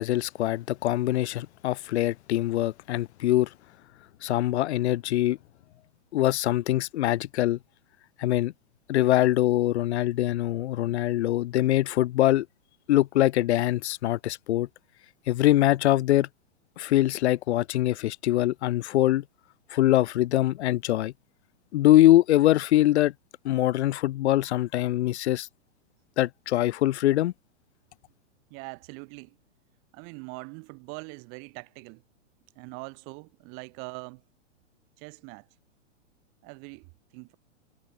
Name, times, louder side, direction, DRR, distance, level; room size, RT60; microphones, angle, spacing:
voice 1, 0.0-3.5 4.2-5.4 6.1-7.6 8.2-8.5 8.9-12.5 12.9-14.7 15.3-16.3 16.8-19.2 19.7-21.1 21.7-23.1 23.4-25.5 26.2-27.3, left 14 dB, 60° left, 0.9 m, -23 dB
voice 2, 28.5-29.4 29.9-32.0 32.6-34.2 35.0-35.5 36.4-37.4, right 39 dB, 35° right, 2.2 m, -42 dB
hypercardioid pair, 145°, 37 cm